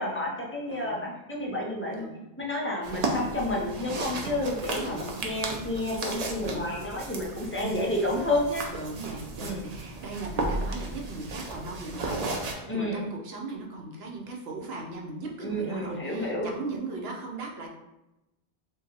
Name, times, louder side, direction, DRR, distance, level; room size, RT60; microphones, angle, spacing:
voice 1, 0.0-2.1 2.4-8.7 9.4-9.6 12.7-13.0 15.4-16.5, left 1 dB, 15° left, -3 dB, 0.4 m, -30 dB
voice 2, 0.7-1.1 1.9-2.2 2.9-3.2 3.8-4.3 4.8-5.2 6.4-6.7 7.6-7.9 8.7-17.7, right 2 dB, 80° right, 1 dB, 0.9 m, -38 dB
sound 1, 2.8-12.5, right 2 dB, 55° right, 0.5 m, -34 dB
2.7 x 2.2 x 3.8 m, 0.95 s
omnidirectional pair, 1.0 m